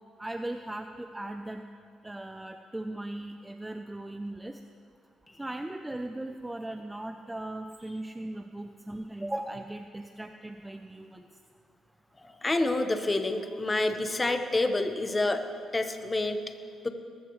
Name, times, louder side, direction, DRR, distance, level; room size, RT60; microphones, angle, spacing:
voice 1, 0.2-1.6 2.0-4.6 5.4-11.3, right 1 dB, 10° right, 6 dB, 0.6 m, -38 dB
voice 2, 12.2-15.5 15.7-16.4 16.8-16.9, left 2 dB, 20° left, 7 dB, 1.1 m, -28 dB
20.0 x 14.5 x 3.2 m, 2.2 s
cardioid pair, 90°, 0 cm